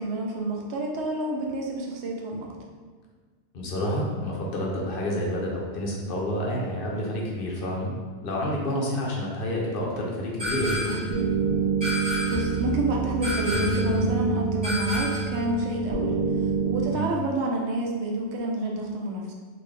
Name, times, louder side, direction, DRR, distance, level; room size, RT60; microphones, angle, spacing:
voice 1, 0.0-2.5 12.3-16.1 16.6-19.3, right 1 dB, 90° right, 0 dB, 0.9 m, -29 dB
voice 2, 3.5-7.9 8.2-11.2 16.9-17.1, left 1 dB, 60° left, -3 dB, 0.8 m, -29 dB
sound 1, 10.4-11.1 11.8-12.5 13.2-13.9 14.6-15.4, left 1 dB, 35° right, 1.6 m, -30 dB
sound 2, 10.6-16.9, right 4 dB, 50° right, 1.0 m, -27 dB
3.8 x 2.5 x 3.2 m, 1.5 s
omnidirectional pair, 1.1 m